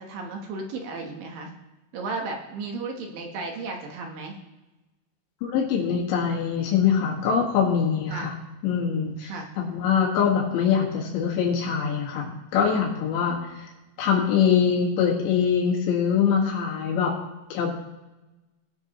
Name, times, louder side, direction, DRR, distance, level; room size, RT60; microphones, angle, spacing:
voice 1, 0.0-1.5 1.9-4.4 8.1-8.4 9.2-9.5, right 3 dB, 65° right, 2 dB, 2.5 m, -34 dB
voice 2, 5.4-8.3 8.6-13.6 14.0-17.2 17.5-17.7, left 7 dB, 90° left, -3 dB, 4.1 m, -23 dB
18.5 x 7.9 x 3.0 m, 1.1 s
omnidirectional pair, 5.1 m